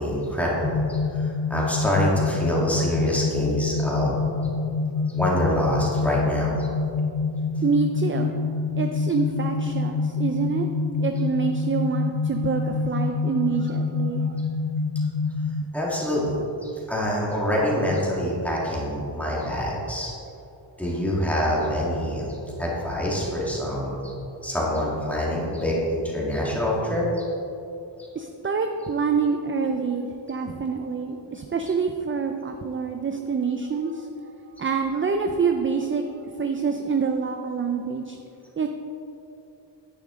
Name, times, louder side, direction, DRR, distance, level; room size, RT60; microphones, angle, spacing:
voice 1, 0.0-4.2 5.1-6.7 15.7-16.4 16.6-20.1 20.8-24.1 24.4-27.3, equal, 5° left, -5 dB, 1.9 m, -26 dB
sound 1, 0.6-15.6, left 4 dB, 35° left, 0.4 m, -26 dB
voice 2, 7.6-8.3 8.8-10.7 11.0-14.4 28.2-34.3 34.6-38.2 38.6-38.7, right 5 dB, 30° right, 5 dB, 0.4 m, -26 dB
10.0 x 9.5 x 3.7 m, 2.8 s
wide cardioid pair, 180°, 44 cm